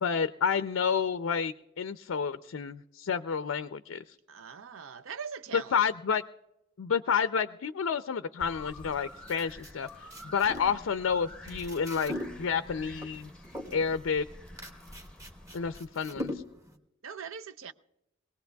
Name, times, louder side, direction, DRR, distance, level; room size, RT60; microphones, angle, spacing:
voice 1, 0.0-4.0 5.5-6.2 6.8-13.3 13.7-14.3 15.5-16.4, left 6 dB, 75° left, 0.4 m, -30 dB
voice 2, 4.3-5.8 17.0-17.7, right 6 dB, 75° right, 0.6 m, -41 dB
sound 1, 8.4-15.8, left 1 dB, 5° left, 0.7 m, -49 dB
sound 2, 8.8-16.8, left 1 dB, 15° right, 1.1 m, -42 dB
22.5 x 18.5 x 2.3 m
head